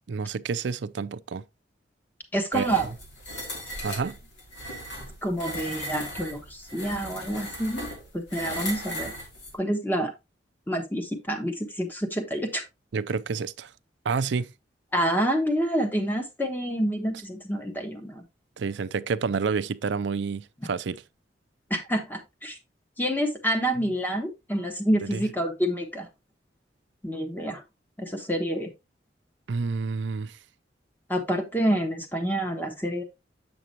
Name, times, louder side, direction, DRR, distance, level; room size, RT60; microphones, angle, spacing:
voice 1, 0.1-1.4 2.5-2.8 3.8-4.2 12.9-13.7 14.0-14.5 18.6-21.0 23.8-23.9 25.0-25.2 29.5-30.4, right 5 dB, 75° right, 0.4 m, -29 dB
voice 2, 2.3-2.9 5.2-7.9 8.1-9.1 9.5-10.1 10.7-12.6 14.9-18.2 21.7-22.6 23.0-26.1 27.0-27.6 28.0-28.7 31.1-33.0, right 1 dB, 10° left, 1.2 m, -28 dB
sound 1, 2.5-9.5, equal, 75° left, 3.1 m, -37 dB
7.9 x 6.0 x 2.9 m
head